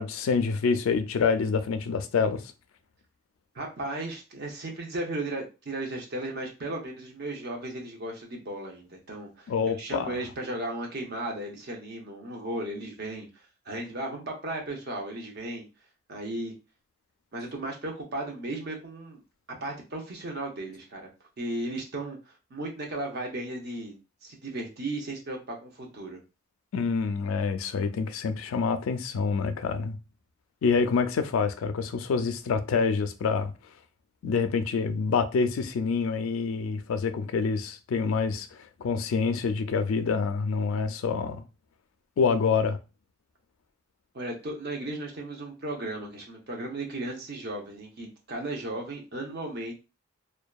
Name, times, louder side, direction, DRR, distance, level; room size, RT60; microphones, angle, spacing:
voice 1, 0.0-2.5 9.5-10.2 26.7-30.0 30.6-33.5 34.2-38.5 38.8-41.4 42.2-42.8, left 5 dB, 85° left, 0.3 m, -26 dB
voice 2, 3.5-9.5 9.8-13.3 13.7-15.6 16.1-16.5 17.3-19.2 19.5-21.1 21.4-22.2 22.5-24.0 24.2-26.2 44.1-49.8, right 2 dB, 50° right, 0.7 m, -35 dB
2.7 x 2.2 x 2.2 m
head